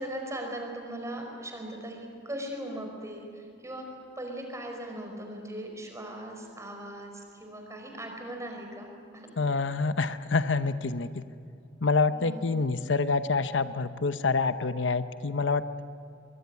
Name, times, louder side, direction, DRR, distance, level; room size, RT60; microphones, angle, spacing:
voice 1, 0.0-3.9 4.2-9.3 12.1-12.4, right 1 dB, 15° right, 2 dB, 4.9 m, -39 dB
voice 2, 9.4-11.2 11.8-15.8, left 4 dB, 80° left, 12 dB, 0.8 m, -27 dB
23.5 x 21.0 x 9.6 m, 2.3 s
head